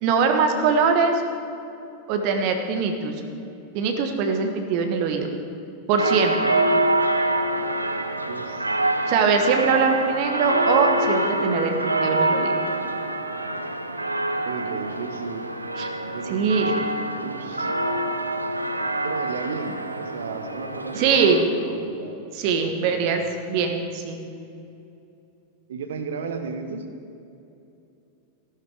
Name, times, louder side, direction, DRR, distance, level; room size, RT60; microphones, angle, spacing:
voice 1, 0.0-1.2 2.1-3.2 3.7-5.3 5.9-6.5 9.1-12.6 15.8-15.9 16.3-16.7 20.9-21.4 22.3-24.2, right 5 dB, 45° right, 5 dB, 1.4 m, -22 dB
sound 1, 6.0-21.4, right 2 dB, 85° right, 0.7 m, -26 dB
voice 2, 8.3-8.8 14.4-15.5 16.1-16.9 17.2-17.7 19.0-23.1 25.7-26.9, right 5 dB, 60° right, 7 dB, 1.2 m, -34 dB
15.0 x 12.0 x 4.9 m, 2.7 s
figure-of-eight pair, 90°, 0 cm